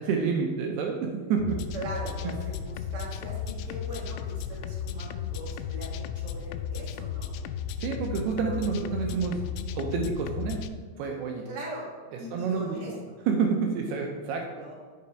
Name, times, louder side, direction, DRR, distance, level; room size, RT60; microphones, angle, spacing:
voice 1, 0.0-1.6 2.2-2.3 7.8-9.4 9.7-10.7 11.0-11.5 12.3-12.8 13.3-14.6, right 5 dB, 80° right, 1 dB, 2.7 m, -28 dB
sound 1, 1.4-10.7, left 7 dB, 85° left, 2.7 m, -35 dB
voice 2, 1.7-7.3 8.4-8.8 11.5-11.9 12.2-12.9 14.5-14.7, right 1 dB, 50° right, -4 dB, 1.9 m, -40 dB
8.8 x 6.8 x 4.4 m, 1.5 s
omnidirectional pair, 4.9 m